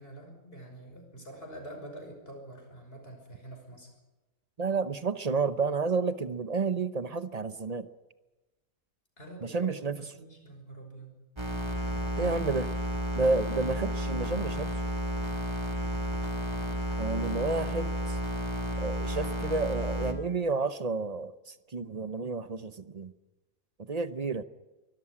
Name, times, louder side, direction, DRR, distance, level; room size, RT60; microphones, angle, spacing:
voice 1, 0.0-3.9 9.2-11.1, right 1 dB, 40° left, 3 dB, 5.9 m, -46 dB
voice 2, 4.6-7.9 9.4-10.0 12.2-12.7 13.1-14.8 17.0-18.2 18.8-23.1 23.9-24.4, right 4 dB, 35° right, 12 dB, 0.7 m, -30 dB
sound 1, 11.4-20.1, equal, 20° right, 2.3 m, -32 dB
23.5 x 13.5 x 9.9 m, 1.1 s
omnidirectional pair, 1.5 m